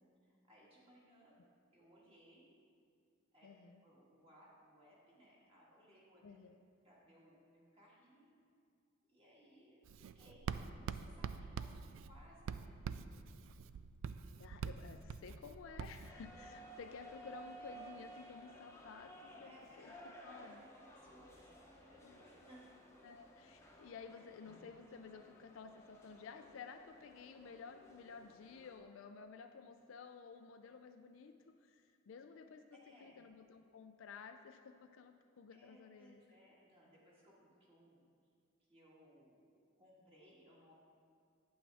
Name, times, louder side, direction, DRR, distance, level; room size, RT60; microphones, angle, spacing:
voice 1, 0.2-1.4 1.7-2.5 3.3-3.5 3.8-6.4 6.8-8.4 9.1-13.6 17.2-17.3 17.6-17.8 19.4-20.1 20.4-22.6 32.7-33.2 35.5-38.0 38.7-39.4 39.7-40.7, equal, 30° right, -5 dB, 2.0 m, -64 dB
voice 2, 3.4-3.8 6.2-6.6 14.4-20.0 20.2-20.6 22.0-22.2 23.0-36.2, left 5 dB, 70° left, 6 dB, 0.4 m, -54 dB
Writing, 9.8-16.1, right 6 dB, 75° right, 0.3 m, -45 dB
sound 1, 16.0-28.7, right 1 dB, 15° left, 0.8 m, -57 dB
8.6 x 8.5 x 3.4 m, 2.2 s
head